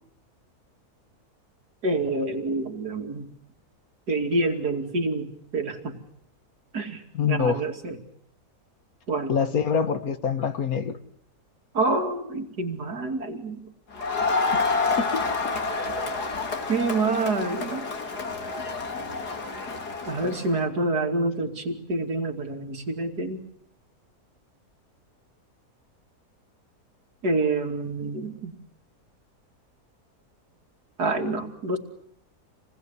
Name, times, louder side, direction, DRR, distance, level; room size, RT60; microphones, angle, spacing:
voice 1, 1.8-3.3 4.1-6.0 6.7-8.0 9.1-9.3 11.7-13.6 16.7-17.8 20.1-23.4 27.2-28.5 31.0-31.8, right 2 dB, 85° right, 3.3 m, -27 dB
voice 2, 7.1-7.6 9.3-11.0 15.0-15.2, left 6 dB, 65° left, 1.9 m, -25 dB
Crowd, 13.9-20.5, left 4 dB, 85° left, 3.0 m, -28 dB
28.0 x 20.0 x 9.8 m
omnidirectional pair, 1.7 m